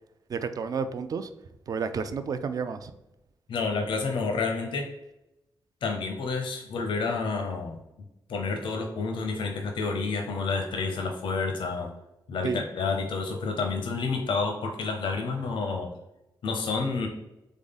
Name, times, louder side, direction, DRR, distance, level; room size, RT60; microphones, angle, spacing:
voice 1, 0.3-1.3 1.7-2.9 12.4-12.6, right 5 dB, 50° right, 11 dB, 0.4 m, -31 dB
voice 2, 3.5-4.9 5.8-7.8 8.3-11.9 12.3-15.9 16.4-17.1, left 4 dB, 85° left, 4 dB, 0.6 m, -29 dB
3.7 x 3.5 x 3.9 m, 0.93 s
wide cardioid pair, 140°, 8 cm